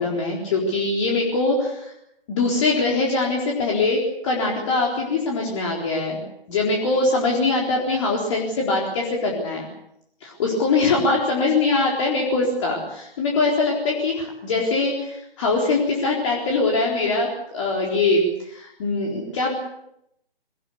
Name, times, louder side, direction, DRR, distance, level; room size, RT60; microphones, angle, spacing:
voice 1, 0.0-1.9 2.3-6.2 6.5-9.7 10.2-19.6, left 3 dB, 30° left, -1 dB, 4.1 m, -22 dB
23.0 x 19.0 x 8.3 m, 0.79 s
figure-of-eight pair, 140°, 30 cm